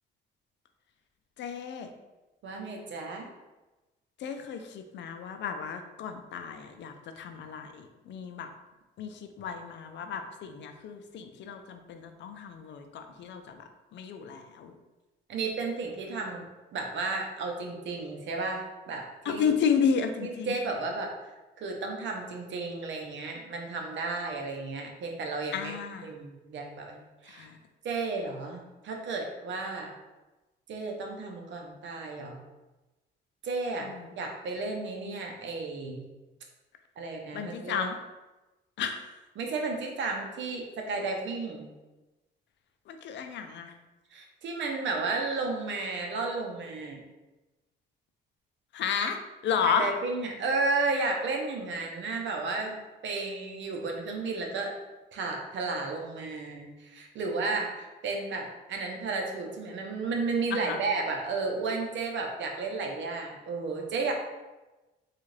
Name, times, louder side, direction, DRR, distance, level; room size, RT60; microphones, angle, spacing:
voice 1, 1.4-1.9 4.2-8.5 9.0-13.6 13.9-14.7 19.3-20.6 25.5-26.1 27.3-27.6 33.8-34.1 37.3-38.0 38.8-39.1 42.9-43.7 48.7-49.9 60.5-60.8, left 6 dB, 65° left, 7 dB, 0.4 m, -32 dB
voice 2, 2.4-3.3 15.3-16.4 16.7-19.5 20.2-21.3 21.6-25.7 26.0-27.5 27.8-29.9 30.7-32.4 33.4-33.9 34.2-36.0 37.0-37.9 39.4-41.7 44.1-47.0 49.6-52.8 53.0-54.7 55.1-64.1, right 3 dB, 70° right, 2 dB, 0.7 m, -33 dB
3.5 x 2.4 x 3.2 m, 1.1 s
cardioid pair, 90°, 20 cm